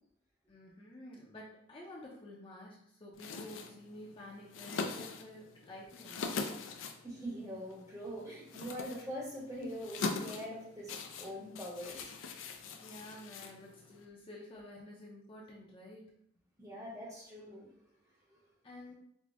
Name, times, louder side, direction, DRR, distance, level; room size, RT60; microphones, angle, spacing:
voice 1, 0.5-6.2 12.3-12.5 12.8-16.1 18.6-18.9, left 1 dB, 25° left, -4 dB, 0.5 m, -50 dB
sound 1, 3.1-14.1, left 4 dB, 90° left, 0.4 m, -43 dB
voice 2, 7.0-12.1 16.6-17.7 18.3-18.4, equal, 15° right, -3 dB, 0.8 m, -43 dB
4.8 x 2.1 x 2.5 m, 0.73 s
head